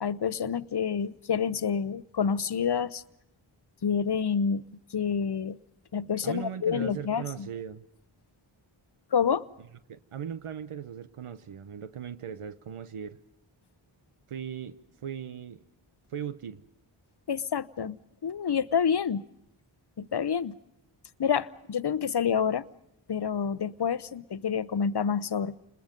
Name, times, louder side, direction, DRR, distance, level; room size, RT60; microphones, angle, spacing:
voice 1, 0.0-3.0 3.8-4.6 4.9-5.6 5.9-7.5 9.1-9.4 17.3-18.0 18.2-19.2 20.0-20.6 21.2-22.7 23.1-25.5, left 7 dB, 50° left, 0.9 m, -28 dB
voice 2, 6.2-7.9 9.9-13.2 14.3-15.6 16.1-16.6, right 8 dB, 85° right, 1.0 m, -38 dB
30.0 x 21.0 x 5.3 m
cardioid pair, 50°, 50 cm